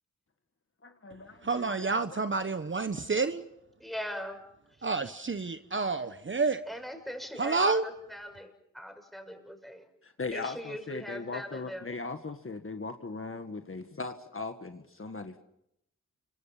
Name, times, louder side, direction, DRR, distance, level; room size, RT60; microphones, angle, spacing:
voice 1, 0.8-1.8 2.1-2.3 2.6-2.7 10.0-15.4, left 3 dB, 45° left, 1.8 m, -39 dB
voice 2, 1.4-3.4 4.8-6.6 7.4-7.8, right 4 dB, 40° right, 1.1 m, -29 dB
voice 3, 3.8-4.4 6.7-9.9 10.3-11.9, equal, ahead, 6.7 m, -40 dB
29.5 x 25.5 x 5.8 m
cardioid pair, 45°, 31 cm